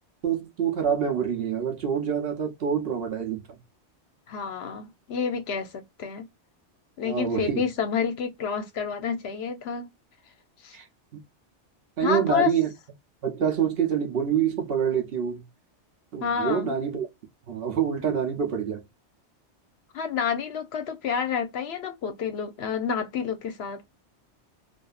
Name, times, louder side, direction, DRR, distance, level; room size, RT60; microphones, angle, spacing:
voice 1, 0.2-3.6 7.0-7.6 10.7-10.9 11.1-11.2 12.0-12.7 13.2-15.4 16.1-17.1 17.5-18.8, right 7 dB, 60° right, 0.9 m, -26 dB
voice 2, 4.3-6.3 7.0-9.9 10.6-10.8 12.0-12.5 16.2-16.8 19.9-24.0, left 6 dB, 65° left, 0.8 m, -29 dB
2.6 x 2.5 x 2.3 m
omnidirectional pair, 1.2 m